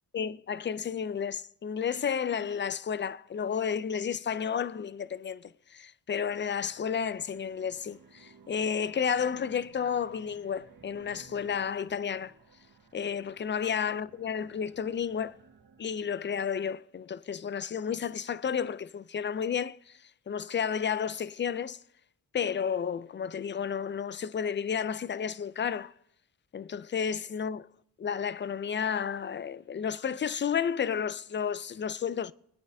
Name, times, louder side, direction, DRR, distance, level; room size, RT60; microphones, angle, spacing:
voice 1, 0.1-12.3 12.9-15.3 15.8-20.0 20.3-21.8 22.3-25.9 26.5-27.7 28.0-32.3, left 7 dB, 30° left, 0.4 m, -32 dB
sound 1, 6.1-16.7, right 5 dB, 60° right, 1.7 m, -58 dB
24.5 x 9.6 x 2.7 m
wide cardioid pair, 85°, 41 cm